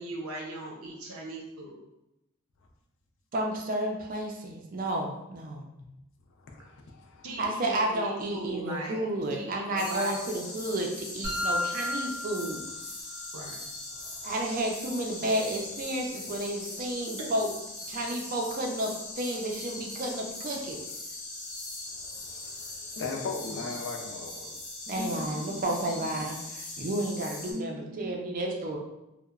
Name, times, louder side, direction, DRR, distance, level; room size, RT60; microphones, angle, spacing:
voice 1, 0.0-1.8 7.2-10.4 13.3-13.6 17.2-17.3 23.5-23.6 24.9-25.4 26.1-26.2 27.4-28.2, right 1 dB, 85° right, 0 dB, 0.6 m, -39 dB
voice 2, 3.3-5.7 7.4-12.6 14.2-17.5 17.9-20.8 24.9-28.8, right 1 dB, 40° right, 1 dB, 0.4 m, -31 dB
voice 3, 6.4-7.3 13.9-14.4 21.9-24.6, left 4 dB, 60° left, 2 dB, 0.4 m, -39 dB
sound 1, 9.8-27.5, left 2 dB, 80° left, 0.8 m, -40 dB
sound 2, 11.2-13.2, left 1 dB, 10° right, 0.7 m, -33 dB
2.8 x 2.1 x 2.3 m, 0.90 s
head